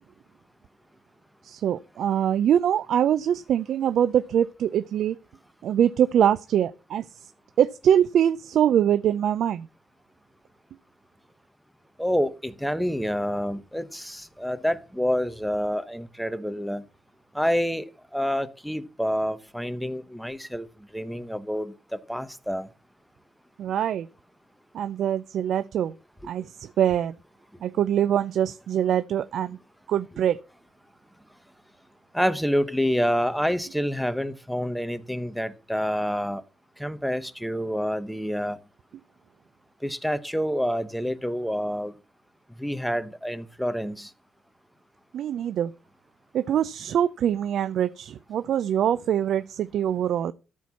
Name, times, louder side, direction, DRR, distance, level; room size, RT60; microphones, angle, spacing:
voice 1, 1.4-5.2 5.6-7.3 7.6-9.7 23.6-24.1 24.7-25.9 26.2-27.1 27.6-29.6 29.9-30.4 45.1-45.7 46.3-50.3, right 10 dB, 70° right, 0.4 m, -23 dB
voice 2, 12.0-16.8 17.3-20.7 20.9-22.7 32.1-36.4 36.8-38.6 39.8-41.9 42.6-44.1, equal, ahead, 1.0 m, -28 dB
13.5 x 4.6 x 7.0 m
cardioid pair, 90°, 0 cm